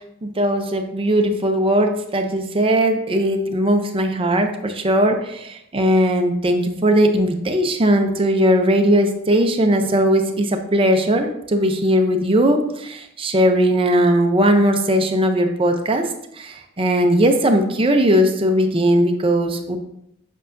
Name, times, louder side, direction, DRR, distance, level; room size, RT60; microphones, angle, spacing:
voice 1, 0.2-16.1 16.4-19.8, equal, 25° right, 5 dB, 0.6 m, -18 dB
7.8 x 5.5 x 2.6 m, 0.78 s
head